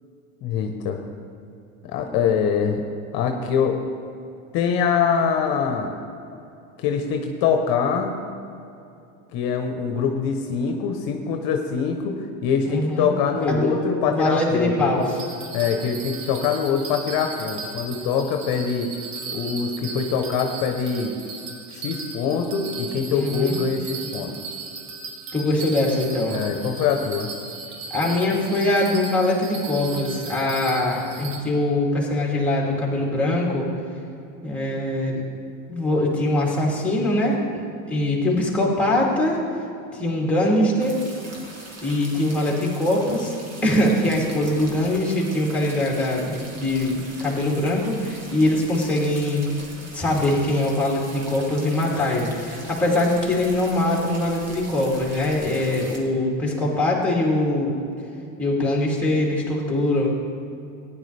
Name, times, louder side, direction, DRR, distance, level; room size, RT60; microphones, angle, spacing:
voice 1, 0.4-1.0 1.9-2.8 3.1-3.8 4.5-5.9 6.8-8.1 9.3-12.1 12.4-14.9 15.5-18.9 19.3-21.1 21.7-24.3 26.3-27.3, left 6 dB, 60° left, 4 dB, 1.1 m, -24 dB
voice 2, 12.7-13.1 13.5-15.2 23.1-23.6 25.3-26.4 27.9-33.7 34.4-35.2 35.7-37.4 37.9-39.4 39.9-41.0 41.8-43.3 43.6-49.5 49.9-57.7 58.4-60.1, left 1 dB, 5° left, -3 dB, 3.0 m, -22 dB
Bell, 15.0-31.4, right 4 dB, 80° right, 1.8 m, -37 dB
sound 1, 40.8-56.0, right 2 dB, 35° right, 2.2 m, -42 dB
15.0 x 10.5 x 3.4 m, 2.7 s
supercardioid pair, 105°, 41 cm